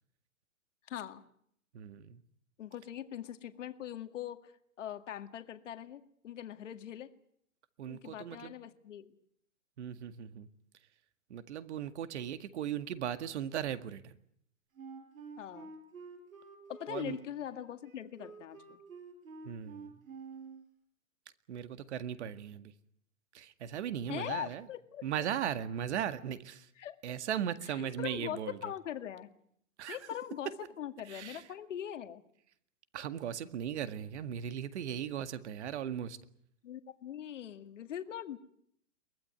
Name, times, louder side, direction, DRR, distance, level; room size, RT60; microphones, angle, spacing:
voice 1, 0.9-1.2 2.6-4.5 4.8-7.1 7.9-9.1 15.4-15.7 16.7-18.8 24.1-25.0 26.8-27.0 27.8-29.3 29.9-30.5 30.8-32.2 36.6-38.4, left 10 dB, 60° left, 8 dB, 2.1 m, -41 dB
voice 2, 1.7-2.2 7.8-8.5 9.8-10.5 11.3-14.2 16.9-17.2 19.4-20.0 21.5-22.7 23.3-24.7 25.0-26.7 27.0-28.7 29.8-30.0 31.1-31.5 32.9-36.2, right 9 dB, 55° right, 10 dB, 2.0 m, -38 dB
Wind instrument woodwind instrument, 14.8-20.6, right 4 dB, 75° right, 7.5 m, -49 dB
23.0 x 19.5 x 9.3 m, 0.69 s
hypercardioid pair, 145°, 41 cm